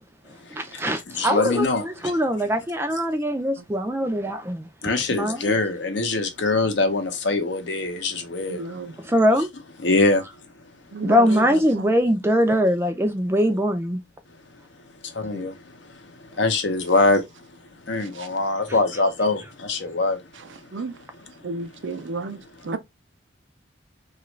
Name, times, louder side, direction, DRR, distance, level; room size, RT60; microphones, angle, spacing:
voice 1, 0.5-4.7 5.1-5.5 9.0-9.5 11.0-14.0, equal, 10° right, 0.4 m, -22 dB
voice 2, 1.2-1.8 4.8-8.6 9.8-10.2 15.2-15.5 16.4-17.2 17.9-19.4 19.7-20.2, left 3 dB, 60° left, 0.7 m, -22 dB
voice 3, 8.5-9.0 10.9-12.0 15.3-15.5 18.0-18.3 20.3-20.9 21.4-22.8, right 3 dB, 70° right, 0.5 m, -33 dB
2.9 x 2.4 x 3.1 m
head